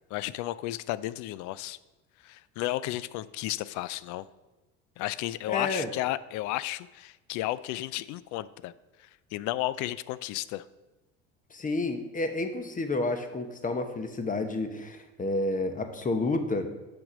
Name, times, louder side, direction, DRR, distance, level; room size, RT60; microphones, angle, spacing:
voice 1, 0.1-1.8 2.2-4.3 5.0-8.7 9.0-10.6, left 15 dB, 55° left, 17 dB, 0.4 m, -33 dB
voice 2, 5.5-5.9 11.5-16.7, left 2 dB, 25° left, 7 dB, 1.0 m, -30 dB
6.0 x 5.2 x 6.2 m, 1.1 s
hypercardioid pair, 75°, 34 cm